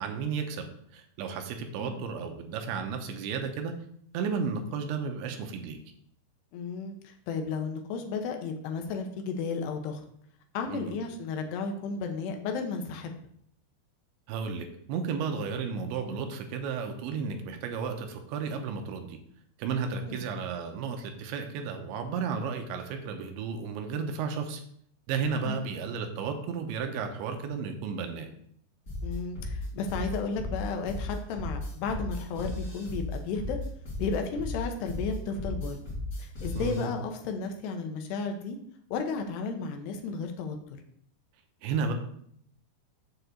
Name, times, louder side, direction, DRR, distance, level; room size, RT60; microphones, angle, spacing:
voice 1, 0.0-3.7 4.1-5.8 10.7-10.9 14.3-19.2 19.6-24.6 25.1-28.3 36.5-36.9 41.6-41.9, right 5 dB, 85° right, 5 dB, 3.0 m, -33 dB
voice 2, 6.5-10.0 10.5-13.1 20.1-20.3 25.5-25.6 29.0-33.6 34.0-35.8 36.2-38.6 38.9-40.8, left 4 dB, 75° left, 4 dB, 2.8 m, -33 dB
sound 1, 28.9-36.9, left 2 dB, 25° left, 1.9 m, -35 dB
7.6 x 4.8 x 6.6 m, 0.67 s
omnidirectional pair, 5.4 m